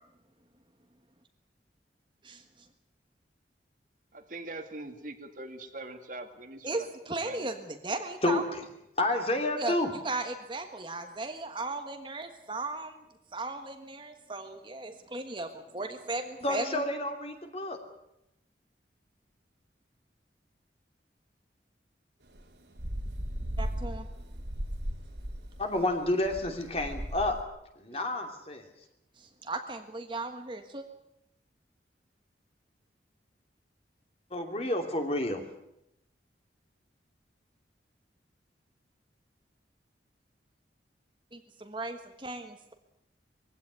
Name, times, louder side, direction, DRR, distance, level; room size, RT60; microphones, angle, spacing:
voice 1, 4.1-6.9 7.2-7.5, right 2 dB, 50° right, 7 dB, 2.0 m, -42 dB
voice 2, 6.6-8.4 9.6-9.7 10.0-13.0 13.3-16.8 23.6-24.1 27.9-28.0 29.2-30.8 41.3-42.7, right 2 dB, 25° right, 5 dB, 1.5 m, -36 dB
voice 3, 8.2-8.6 9.0-9.9 16.4-17.8 25.6-27.4 27.8-28.7 34.3-35.4, left 1 dB, 35° left, 4 dB, 2.9 m, -30 dB
sound 1, 22.3-27.4, equal, 80° right, 3.3 m, -36 dB
21.5 x 16.5 x 9.4 m, 0.82 s
head